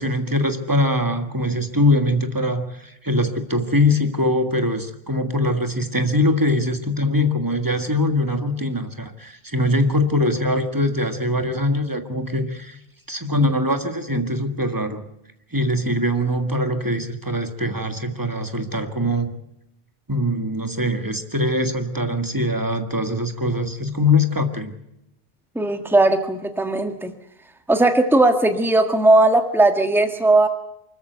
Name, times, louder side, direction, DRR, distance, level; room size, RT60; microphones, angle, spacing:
voice 1, 0.0-12.8 13.1-15.0 15.5-19.3 20.1-24.7, left 1 dB, 20° right, 7 dB, 1.7 m, -22 dB
voice 2, 25.5-27.1 27.7-30.5, right 2 dB, ahead, 6 dB, 1.6 m, -17 dB
24.5 x 14.5 x 8.1 m, 0.83 s
omnidirectional pair, 1.0 m